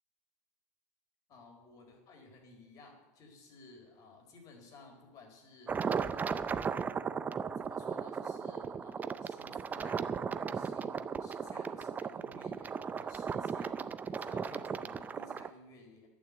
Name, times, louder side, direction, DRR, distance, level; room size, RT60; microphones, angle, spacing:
voice 1, 1.3-6.8 7.6-16.1, left 3 dB, 45° left, 2 dB, 4.0 m, -56 dB
sound 1, 5.7-15.5, right 6 dB, 20° right, 0.5 m, -36 dB
12.0 x 8.9 x 8.0 m, 1.2 s
supercardioid pair, 120°, 8 cm